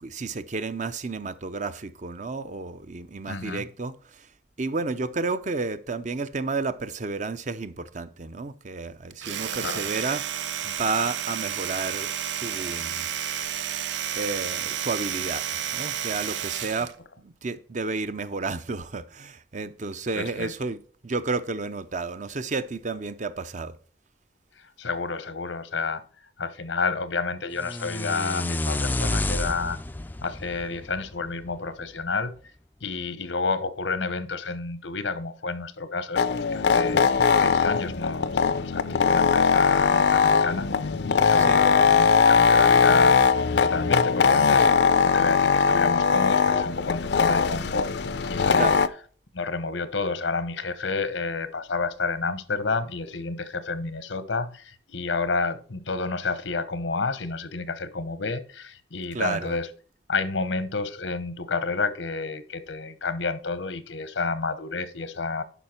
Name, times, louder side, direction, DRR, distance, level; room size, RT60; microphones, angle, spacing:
voice 1, 0.0-4.3 4.6-13.1 14.1-15.5 15.7-23.8 41.4-41.6 48.5-48.8 59.1-59.6, right 3 dB, 40° right, 0.6 m, -31 dB
voice 2, 3.3-3.6 9.6-9.8 20.2-20.5 24.8-26.0 26.4-29.8 30.2-32.3 32.8-37.0 37.3-43.2 43.6-44.7 45.0-47.9 48.3-48.7 49.3-59.7 60.1-65.4, left 4 dB, 90° left, 1.0 m, -30 dB
Domestic sounds home sounds, 9.1-17.0, right 9 dB, 85° right, 0.6 m, -31 dB
sound 1, 27.6-31.7, left 2 dB, 10° left, 0.3 m, -30 dB
sound 2, 36.2-48.9, left 5 dB, 65° left, 0.5 m, -20 dB
11.0 x 5.6 x 4.3 m
head